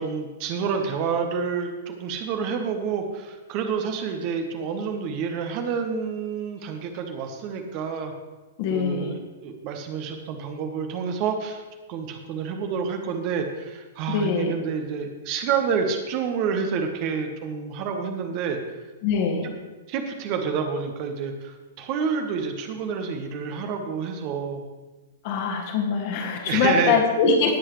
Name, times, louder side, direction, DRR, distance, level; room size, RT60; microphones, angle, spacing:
voice 1, 0.0-8.1 8.7-11.6 11.9-18.6 19.4-19.5 19.9-24.6 26.5-27.0, right 6 dB, 40° right, 5 dB, 1.2 m, -28 dB
voice 2, 8.6-9.2 14.1-14.5 19.0-19.5 25.2-27.6, left 5 dB, 45° left, 1 dB, 2.0 m, -23 dB
18.0 x 7.8 x 3.2 m, 1.2 s
figure-of-eight pair, 105°, 0 cm